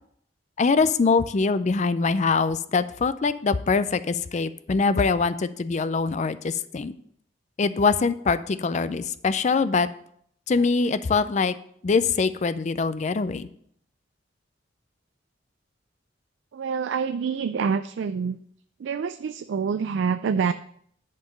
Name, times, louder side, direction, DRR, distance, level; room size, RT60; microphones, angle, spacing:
voice 1, 0.6-6.9 7.6-9.9 10.5-11.6 11.8-13.5, left 4 dB, 40° left, 14 dB, 0.4 m, -23 dB
voice 2, 16.5-18.4 18.8-20.5, right 6 dB, 65° right, 11 dB, 0.3 m, -26 dB
10.5 x 4.5 x 5.1 m, 0.65 s
head